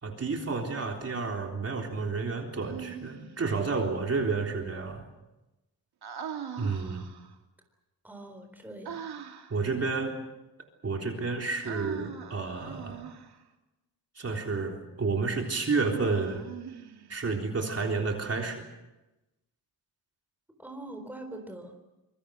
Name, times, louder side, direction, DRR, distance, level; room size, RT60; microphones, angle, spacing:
voice 1, 0.0-5.0 6.6-7.1 9.5-10.1 10.8-13.0 14.2-16.5 17.1-18.6, right 4 dB, 35° right, 1 dB, 3.7 m, -30 dB
Human voice, 2.6-3.5 6.0-7.4 8.8-9.6 11.6-13.4 15.7-17.3, right 8 dB, 60° right, 2.8 m, -41 dB
voice 2, 8.0-9.1 20.6-21.7, right 1 dB, 5° right, 4 dB, 3.9 m, -43 dB
25.5 x 23.5 x 6.5 m, 1.0 s
cardioid pair, 130°, 43 cm